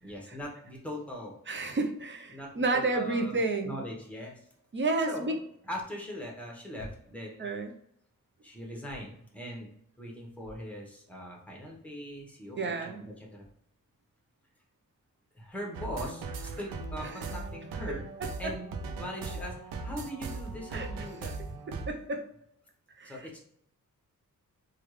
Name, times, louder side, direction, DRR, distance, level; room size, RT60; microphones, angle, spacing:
voice 1, 0.0-1.3 2.3-3.4 3.6-4.5 5.0-5.4 5.6-7.5 8.4-13.4 15.3-18.1 18.4-18.7 19.0-21.3 23.0-23.4, equal, 5° left, -1 dB, 0.9 m, -41 dB
voice 2, 1.5-3.8 4.7-5.3 7.4-7.7 12.6-13.1 17.0-17.2 18.2-18.5 20.7-20.9 21.9-22.2 23.0-23.2, right 3 dB, 35° right, 4 dB, 0.6 m, -31 dB
sound 1, 15.7-21.9, right 3 dB, 85° right, 0.5 m, -39 dB
3.4 x 2.3 x 3.1 m, 0.69 s
wide cardioid pair, 105°, 34 cm